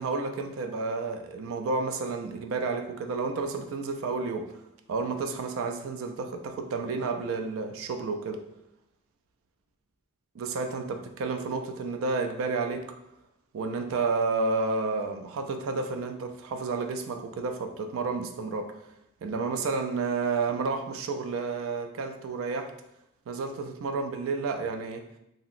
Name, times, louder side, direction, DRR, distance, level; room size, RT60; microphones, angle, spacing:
voice 1, 0.0-4.5 4.9-8.4 10.4-12.8 13.5-18.7 19.2-22.7 23.3-25.0, right 4 dB, 70° right, 6 dB, 0.3 m, -31 dB
2.8 x 2.7 x 2.4 m, 0.84 s
head